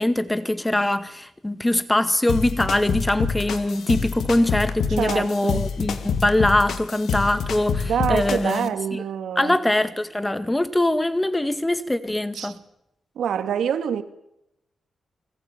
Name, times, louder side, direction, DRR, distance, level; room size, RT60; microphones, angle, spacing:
voice 1, 0.0-9.0 9.4-12.6, left 1 dB, 10° left, 1.8 m, -23 dB
sound 1, 2.3-8.7, left 6 dB, 70° left, 2.3 m, -27 dB
voice 2, 4.9-5.7 7.8-9.6 12.3-12.5 13.2-14.0, right 8 dB, 80° right, 2.8 m, -26 dB
29.5 x 21.0 x 9.2 m
wide cardioid pair, 145°, 0 cm